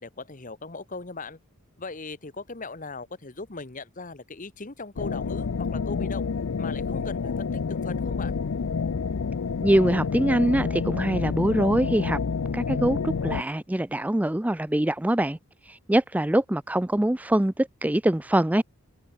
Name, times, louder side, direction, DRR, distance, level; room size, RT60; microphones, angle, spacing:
voice 1, 0.0-1.4 1.8-6.3 6.6-8.4, left 3 dB, 35° left, 1.2 m, -39 dB
sound 1, 5.0-13.4, left 5 dB, 70° left, 0.5 m, -28 dB
voice 2, 9.6-12.2 12.5-15.4 15.7-18.6, right 1 dB, 5° right, 0.4 m, -23 dB
head